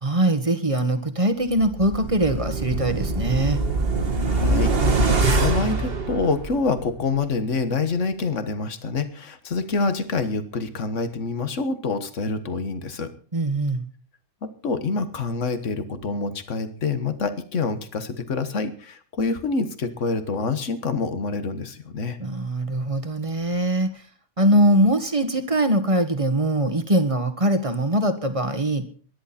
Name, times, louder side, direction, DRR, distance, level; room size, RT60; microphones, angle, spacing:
voice 1, 0.0-3.6 13.3-13.8 22.2-24.0 24.4-28.8, right 1 dB, 25° right, 8 dB, 1.5 m, -22 dB
sound 1, 1.6-6.8 7.2-7.3, right 3 dB, 45° right, 1.8 m, -23 dB
voice 2, 4.2-13.1 14.4-22.2, left 4 dB, 65° left, 10 dB, 1.7 m, -27 dB
22.5 x 11.0 x 4.3 m, 0.43 s
omnidirectional pair, 1.3 m